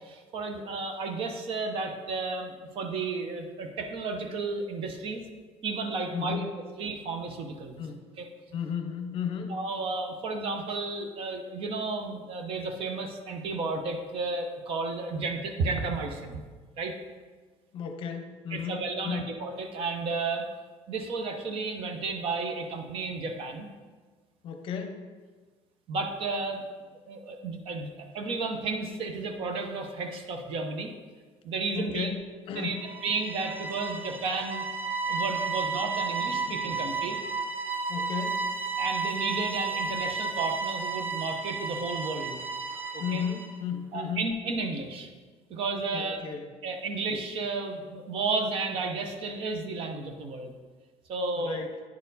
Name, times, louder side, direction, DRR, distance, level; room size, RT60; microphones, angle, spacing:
voice 1, 0.1-5.2 5.6-6.5 6.8-7.8 8.2-8.3 9.5-16.4 16.8-17.0 18.5-20.5 20.9-23.7 25.9-26.6 27.1-30.9 31.4-32.1 32.5-34.7 35.1-37.2 38.8-42.4 42.9-43.2 43.9-45.1 45.5-46.2 46.6-50.5 51.1-51.6, right 3 dB, 50° right, 5 dB, 0.8 m, -32 dB
voice 2, 6.1-6.6 7.8-8.0 8.5-9.5 17.7-19.3 24.4-25.1 31.7-32.2 32.5-32.9 36.2-37.0 37.9-38.5 43.0-44.3 45.9-46.5 51.4-51.8, left 7 dB, 50° left, 7 dB, 0.7 m, -34 dB
sound 1, 32.8-43.6, right 4 dB, 15° right, 0.5 m, -32 dB
9.5 x 4.4 x 4.0 m, 1.4 s
cardioid pair, 160°, 12 cm